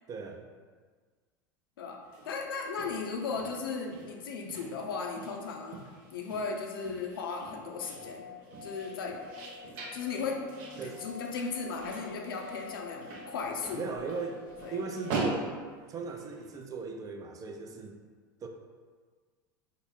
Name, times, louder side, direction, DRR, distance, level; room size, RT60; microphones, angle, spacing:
voice 1, 0.1-0.5 10.8-11.0 13.7-14.4 14.7-15.5 15.9-18.0 18.4-18.5, right 4 dB, 30° right, 4 dB, 0.4 m, -38 dB
sound 1, 2.0-16.5, right 3 dB, 65° right, 0.7 m, -43 dB
voice 2, 2.3-5.8 6.1-8.3 8.6-9.2 9.9-10.4 10.8-13.9 14.6-14.7, left 5 dB, 80° left, 2 dB, 0.5 m, -36 dB
sound 2, 7.7-15.3, left 4 dB, 10° right, 1.1 m, -47 dB
3.5 x 2.1 x 3.8 m, 1.5 s
hypercardioid pair, 90°, 12 cm